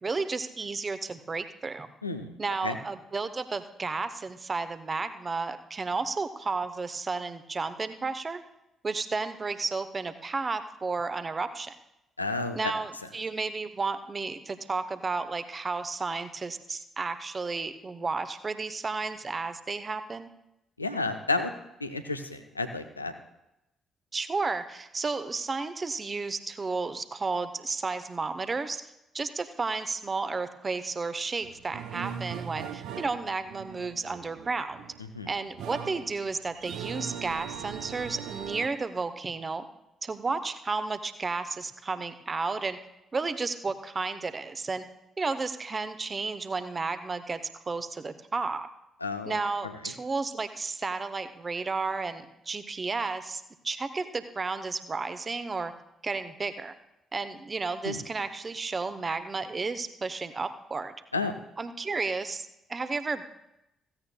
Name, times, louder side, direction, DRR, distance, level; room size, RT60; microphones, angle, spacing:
voice 1, 0.0-1.9 2.4-8.4 8.8-11.8 12.6-20.3 24.1-28.8 29.1-34.8 35.3-39.7 40.0-42.8 43.1-44.8 45.2-47.4 47.7-48.7 49.3-55.7 56.0-56.7 57.1-60.9 61.6-63.2, right 4 dB, 30° right, 11 dB, 0.8 m, -32 dB
voice 2, 2.0-2.4 2.6-2.8 12.2-12.7 20.8-21.5 21.8-23.1 35.1-35.3 49.0-49.4 49.6-49.9 57.8-58.0 61.1-61.4, left 3 dB, 85° left, 8 dB, 0.5 m, -31 dB
sound 1, 31.4-38.7, right 8 dB, 60° right, 0.6 m, -40 dB
15.5 x 15.5 x 2.2 m, 0.87 s
figure-of-eight pair, 45°, 0 cm